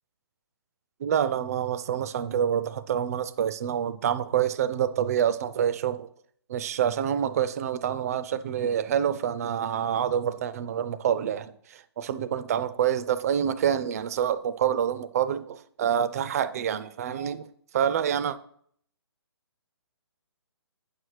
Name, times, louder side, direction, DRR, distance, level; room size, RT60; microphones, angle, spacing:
voice 1, 1.0-6.1 6.5-17.5 17.7-18.3, right 9 dB, 35° right, 0.4 m, -27 dB
8.8 x 6.4 x 3.2 m
figure-of-eight pair, 145°, 14 cm